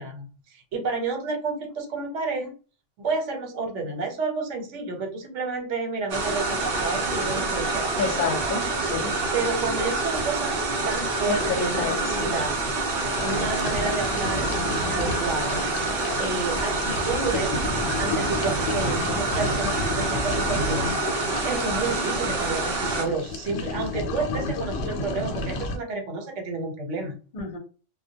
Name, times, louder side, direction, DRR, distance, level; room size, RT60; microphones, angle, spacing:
voice 1, 0.0-2.5 3.0-8.2 9.3-12.5 13.2-14.5 14.8-15.9 16.2-21.0 21.4-27.2, right 3 dB, 75° right, 2 dB, 1.1 m, -30 dB
sound 1, 6.1-23.1, right 3 dB, 60° right, 0.7 m, -27 dB
voice 2, 8.0-9.1 11.3-12.3 15.5-15.6 27.3-27.6, left 4 dB, 50° left, 2 dB, 0.7 m, -29 dB
sound 2, 13.2-25.8, left 3 dB, 85° left, 0.9 m, -31 dB
2.2 x 2.1 x 2.7 m, 0.36 s
omnidirectional pair, 1.2 m